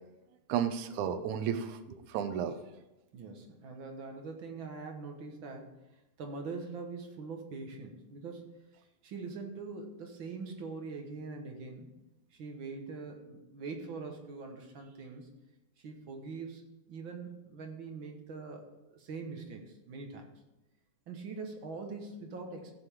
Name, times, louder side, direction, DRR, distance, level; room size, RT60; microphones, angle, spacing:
voice 1, 0.5-2.6, right 8 dB, 75° right, 8 dB, 2.1 m, -33 dB
voice 2, 3.1-5.7 6.2-8.5 9.0-11.9 12.3-15.3 15.8-20.3 21.1-22.7, right 4 dB, 55° right, 2 dB, 1.5 m, -43 dB
14.5 x 7.8 x 3.7 m, 0.97 s
omnidirectional pair, 3.6 m